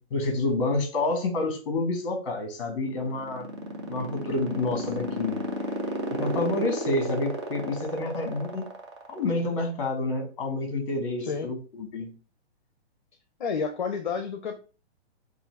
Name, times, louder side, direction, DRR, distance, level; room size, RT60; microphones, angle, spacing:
voice 1, 0.1-3.5 3.9-5.4 6.1-8.7 9.1-12.1, left 2 dB, 30° left, 4 dB, 1.1 m, -28 dB
sound 1, 2.8-9.4, right 2 dB, 25° right, 0.5 m, -31 dB
voice 2, 13.4-14.6, left 5 dB, 45° left, 7 dB, 0.6 m, -30 dB
3.7 x 2.6 x 4.3 m, 0.36 s
hypercardioid pair, 180°, 33 cm